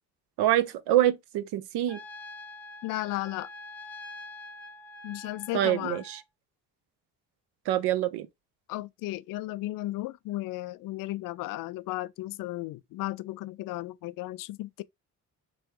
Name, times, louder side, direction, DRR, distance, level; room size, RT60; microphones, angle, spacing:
voice 1, 0.4-2.0 5.5-6.2 7.7-8.3, right 13 dB, 60° right, 0.7 m, -25 dB
Trumpet, 1.9-6.2, left 2 dB, 5° left, 1.0 m, -45 dB
voice 2, 2.8-3.5 5.0-6.0 8.7-14.8, left 17 dB, 45° left, 0.5 m, -34 dB
3.4 x 3.0 x 4.6 m
figure-of-eight pair, 40°, 46 cm